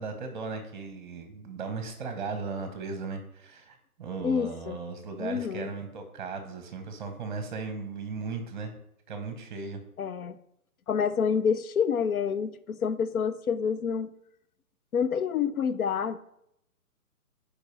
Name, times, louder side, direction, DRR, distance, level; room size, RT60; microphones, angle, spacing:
voice 1, 0.0-8.7 9.1-9.8, right 4 dB, 30° right, 6 dB, 1.1 m, -37 dB
voice 2, 4.2-4.8 5.2-5.7 10.0-10.4 10.9-14.1 14.9-16.2, left 6 dB, 70° left, 12 dB, 0.8 m, -28 dB
12.0 x 5.1 x 3.3 m, 0.76 s
hypercardioid pair, 165°, 45 cm